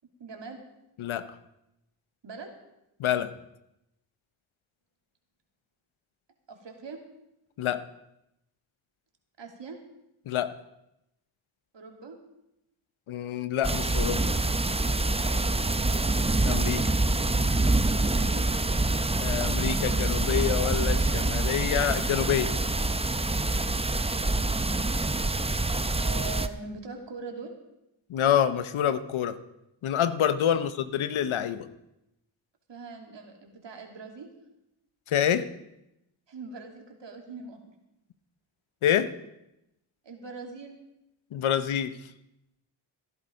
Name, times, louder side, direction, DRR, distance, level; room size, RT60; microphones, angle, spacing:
voice 1, 0.2-0.6 2.2-2.5 6.5-7.0 9.4-9.8 11.7-12.2 15.2-15.7 17.8-18.4 26.0-27.5 32.7-34.3 36.3-37.7 40.0-40.8, right 4 dB, 65° right, 3 dB, 2.6 m, -42 dB
voice 2, 1.0-1.3 3.0-3.3 7.6-7.8 10.3-10.6 13.1-14.3 16.4-17.0 19.2-22.5 28.1-29.4 29.8-31.7 35.1-35.5 38.8-39.1 41.3-42.0, left 10 dB, 85° left, 13 dB, 0.9 m, -27 dB
sound 1, 13.6-26.5, right 2 dB, 15° right, 0.7 m, -26 dB
15.5 x 10.5 x 5.2 m, 0.88 s
cardioid pair, 55°, 47 cm